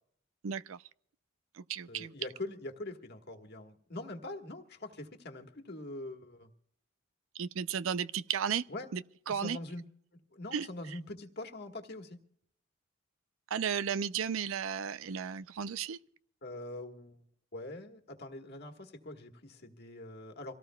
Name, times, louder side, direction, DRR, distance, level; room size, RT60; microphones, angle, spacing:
voice 1, 0.4-0.8 1.5-2.1 7.3-8.6 8.9-9.6 10.5-11.0 13.5-16.0, right 7 dB, 85° right, 0.5 m, -34 dB
voice 2, 1.9-6.5 8.7-8.9 9.3-9.8 10.3-12.2 16.4-17.2 17.5-20.5, left 2 dB, 55° left, 1.5 m, -43 dB
25.5 x 17.5 x 2.3 m
head